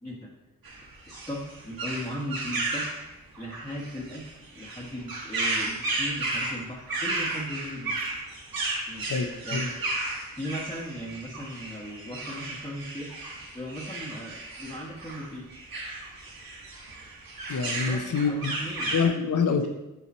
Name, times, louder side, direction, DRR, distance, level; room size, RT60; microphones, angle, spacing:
sound 1, 0.6-19.0, right 2 dB, 85° right, 1.6 m, -34 dB
voice 1, 1.1-2.9 3.4-4.2 4.5-8.0 8.9-9.1 9.4-9.7 10.4-13.1 13.5-15.5 17.8-18.9 19.5-19.7, equal, 10° left, -4 dB, 1.1 m, -37 dB
voice 2, 9.1-9.7 17.5-18.5 18.9-19.7, left 5 dB, 60° left, 8 dB, 0.7 m, -26 dB
7.0 x 4.8 x 4.2 m, 1.0 s
wide cardioid pair, 80°, 34 cm